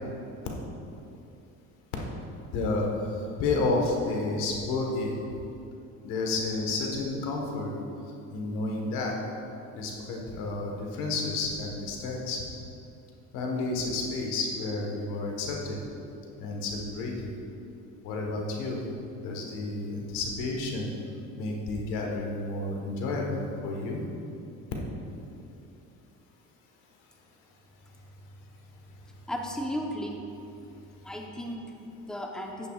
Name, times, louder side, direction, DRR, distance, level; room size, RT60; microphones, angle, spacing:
voice 1, 2.5-2.9 3.4-5.1 6.0-7.7 8.3-9.1 9.7-12.4 13.3-15.8 16.4-17.3 18.0-18.8 19.2-20.9 21.4-24.0, left 3 dB, 90° left, 0 dB, 1.5 m, -31 dB
voice 2, 29.3-30.2 31.0-32.7, equal, ahead, 1 dB, 1.0 m, -35 dB
11.0 x 9.2 x 2.4 m, 2.7 s
supercardioid pair, 90°, 32 cm